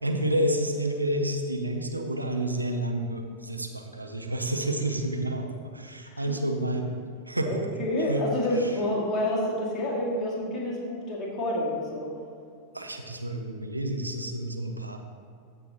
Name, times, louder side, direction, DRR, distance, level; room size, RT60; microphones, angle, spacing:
voice 1, 0.0-7.0 7.3-7.5 8.1-8.2 8.5-8.8 12.7-15.0, right 1 dB, 85° right, 4 dB, 0.7 m, -29 dB
voice 2, 6.1-6.4 7.5-12.1, left 1 dB, 25° left, -5 dB, 2.3 m, -28 dB
14.5 x 6.1 x 2.9 m, 2.3 s
figure-of-eight pair, 90°, 0 cm